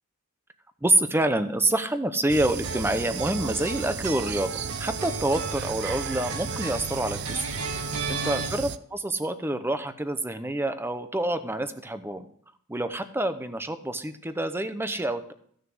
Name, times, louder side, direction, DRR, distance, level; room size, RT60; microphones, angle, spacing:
voice 1, 0.8-7.5 7.7-12.3 12.7-15.3, right 1 dB, 10° right, 10 dB, 0.8 m, -27 dB
sound 1, 2.3-8.8, right 7 dB, 55° right, 0.5 m, -34 dB
sound 2, 2.6-8.5, right 3 dB, 90° right, 1.8 m, -35 dB
15.0 x 6.5 x 6.2 m, 0.63 s
head